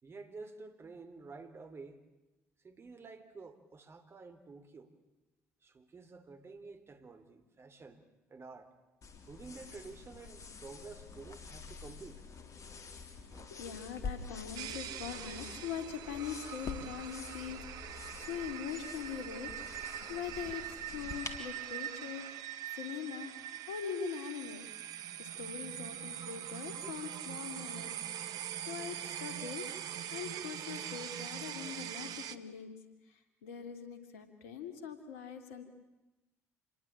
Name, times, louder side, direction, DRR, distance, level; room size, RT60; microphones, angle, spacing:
voice 1, 0.0-2.0 2.6-4.9 5.6-8.0 8.3-8.7 9.3-12.2 12.9-13.0 13.3-13.6, right 4 dB, 35° right, 9 dB, 3.4 m, -50 dB
sound 1, 9.0-21.4, left 4 dB, 50° left, 3.7 m, -47 dB
voice 2, 13.3-24.7 25.2-32.8 33.1-35.6, left 7 dB, 75° left, 9 dB, 2.8 m, -43 dB
sound 2, 14.6-32.4, right 10 dB, 60° right, 1.4 m, -43 dB
28.0 x 22.0 x 8.8 m, 1.0 s
hypercardioid pair, 55°, 7 cm